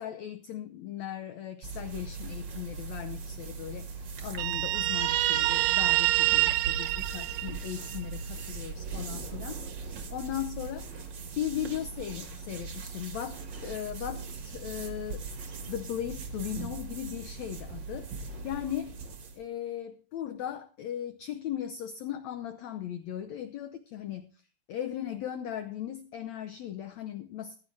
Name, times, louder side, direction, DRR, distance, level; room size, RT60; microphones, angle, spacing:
voice 1, 0.0-10.8 11.4-15.2 15.7-18.9 19.4-24.3 24.7-27.6, left 10 dB, 85° left, 9 dB, 1.5 m, -37 dB
sound 1, 1.6-19.4, right 4 dB, 50° right, 1.4 m, -40 dB
Guitar, 4.4-8.0, right 16 dB, 75° right, 2.2 m, -26 dB
15.0 x 11.0 x 3.2 m, 0.38 s
omnidirectional pair, 4.1 m